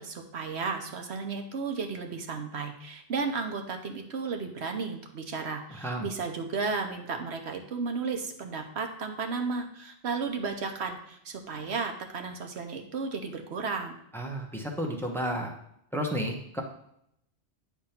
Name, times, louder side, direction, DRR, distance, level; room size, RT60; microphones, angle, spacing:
voice 1, 0.0-14.0, right 4 dB, 75° right, 5 dB, 1.2 m, -34 dB
voice 2, 14.1-15.5 15.9-16.6, equal, ahead, 1 dB, 0.9 m, -32 dB
9.2 x 3.5 x 5.8 m, 0.75 s
omnidirectional pair, 1.1 m